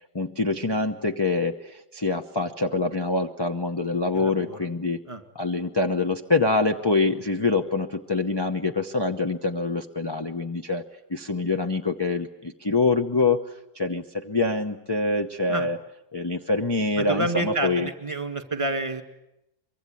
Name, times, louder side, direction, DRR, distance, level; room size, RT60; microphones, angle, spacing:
voice 1, 0.1-5.0 5.3-10.8 11.1-13.4 13.7-15.8 16.1-17.9, left 3 dB, 20° left, 5 dB, 0.9 m, -25 dB
voice 2, 4.1-4.7 5.1-5.2 15.5-15.7 17.0-19.0, right 2 dB, 25° right, 6 dB, 2.2 m, -29 dB
24.5 x 23.5 x 9.2 m, 0.87 s
omnidirectional pair, 1.3 m